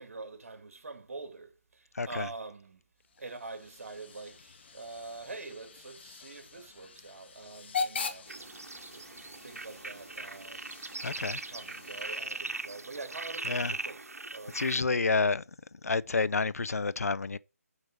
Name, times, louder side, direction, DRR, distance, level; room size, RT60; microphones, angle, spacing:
voice 1, 0.0-2.8 3.2-8.7 8.9-10.7 11.1-14.8, right 3 dB, 60° right, 2.2 m, -45 dB
voice 2, 2.0-2.3 11.0-11.4 13.4-13.7 14.5-15.4 15.8-17.4, left 4 dB, 75° left, 0.5 m, -29 dB
Hiss / Train / Alarm, 3.0-12.7, left 5 dB, 45° left, 1.2 m, -42 dB
sound 1, 8.3-14.8, right 3 dB, 75° right, 1.0 m, -40 dB
8.2 x 4.6 x 7.3 m
figure-of-eight pair, 150°, 8 cm